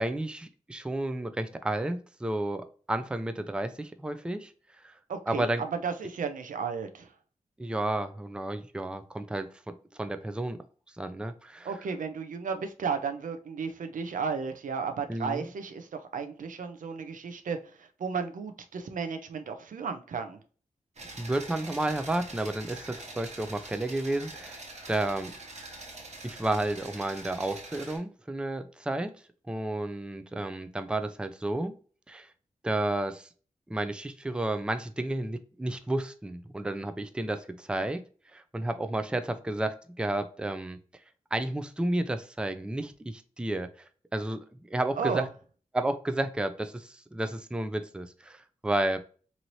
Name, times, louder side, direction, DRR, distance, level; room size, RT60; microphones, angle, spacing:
voice 1, 0.0-4.5 4.8-4.9 5.3-5.6 7.6-10.6 11.0-11.7 15.1-15.5 21.2-25.3 26.2-29.1 29.5-31.8 32.1-32.3 32.6-33.3 33.7-38.0 38.3-40.8 41.3-44.4 44.7-45.2 45.7-49.0, right 1 dB, 5° right, 0.4 m, -32 dB
voice 2, 5.1-7.1 11.6-20.4 45.0-45.3, right 5 dB, 75° right, 0.5 m, -34 dB
sound 1, 21.0-28.0, right 2 dB, 55° right, 1.1 m, -44 dB
3.0 x 2.7 x 2.6 m
cardioid pair, 50°, 14 cm